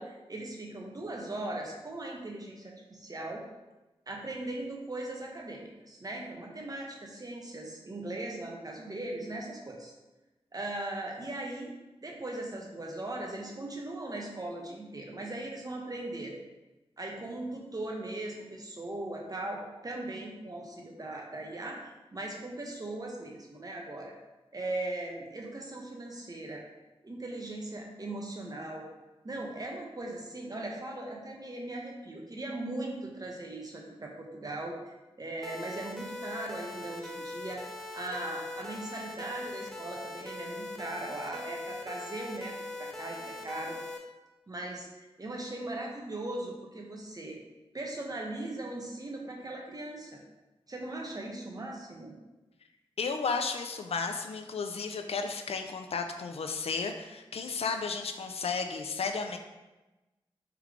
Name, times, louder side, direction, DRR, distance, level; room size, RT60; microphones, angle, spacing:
voice 1, 0.0-3.4 4.1-9.9 10.5-11.7 12.0-16.3 17.0-21.8 22.1-24.1 24.5-26.6 27.0-28.9 29.2-37.7 37.9-43.8 44.5-44.9 45.2-47.4 47.7-50.2 50.7-52.1, right 2 dB, 40° right, 0 dB, 0.8 m, -39 dB
sound 1, 35.4-44.0, left 2 dB, 5° left, 0.6 m, -41 dB
voice 2, 53.0-59.4, left 5 dB, 80° left, 6 dB, 0.4 m, -33 dB
3.5 x 3.1 x 3.6 m, 1.1 s
wide cardioid pair, 60°, 10 cm